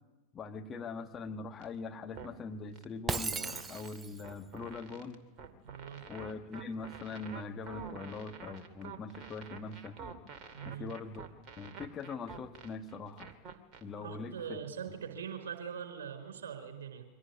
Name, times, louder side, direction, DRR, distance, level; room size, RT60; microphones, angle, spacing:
voice 1, 0.3-5.2 6.1-10.0 10.6-11.3 11.6-13.3 13.8-14.6, left 4 dB, 25° left, 4 dB, 1.8 m, -42 dB
sound 1, 1.6-1.7 2.2-2.4 2.7-2.8 3.3-13.8, right 5 dB, 35° right, 2.6 m, -48 dB
Shatter, 3.1-4.3, right 4 dB, 15° right, 0.8 m, -36 dB
voice 2, 5.6-6.0 10.5-10.9 14.0-17.0, right 7 dB, 60° right, 7 dB, 4.8 m, -42 dB
24.0 x 18.0 x 9.9 m, 1.1 s
figure-of-eight pair, 90°, 0 cm